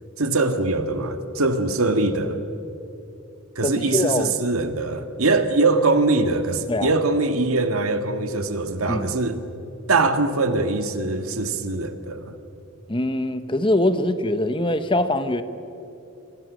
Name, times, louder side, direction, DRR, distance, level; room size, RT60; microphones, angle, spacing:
voice 1, 0.2-2.4 3.6-9.4 9.9-12.4, right 3 dB, 90° right, 8 dB, 1.9 m, -22 dB
voice 2, 3.6-4.3 6.7-6.9 8.9-9.1 12.9-15.4, left 1 dB, 25° left, 10 dB, 1.1 m, -23 dB
27.0 x 25.0 x 6.4 m, 2.8 s
head